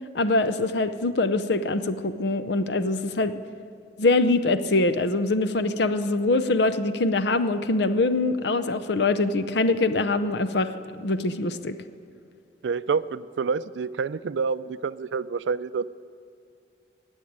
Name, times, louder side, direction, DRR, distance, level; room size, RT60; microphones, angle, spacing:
voice 1, 0.1-3.4 4.0-10.7 11.0-11.8, left 2 dB, 70° left, 11 dB, 0.6 m, -23 dB
voice 2, 12.6-15.9, right 5 dB, 85° right, 16 dB, 0.4 m, -28 dB
19.0 x 7.3 x 9.4 m, 2.4 s
head